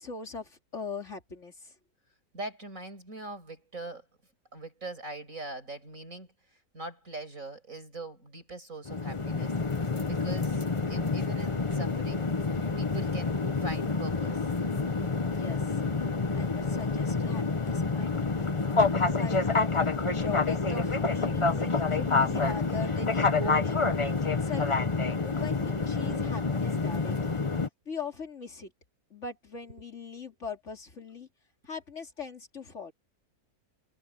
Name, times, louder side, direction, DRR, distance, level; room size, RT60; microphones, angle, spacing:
voice 1, 0.0-1.7 15.2-15.8 16.3-18.6 19.1-23.9 24.2-24.7 25.2-27.4 27.8-28.7 29.1-31.3 31.7-32.9, left 4 dB, 50° left, 3.1 m, -41 dB
voice 2, 2.3-4.0 4.5-6.3 6.7-12.3 12.8-14.4 26.1-26.2 26.8-26.9, right 2 dB, 55° right, 6.3 m, -42 dB
sound 1, 8.8-27.7, left 4 dB, 25° left, 0.8 m, -28 dB
omnidirectional pair, 1.7 m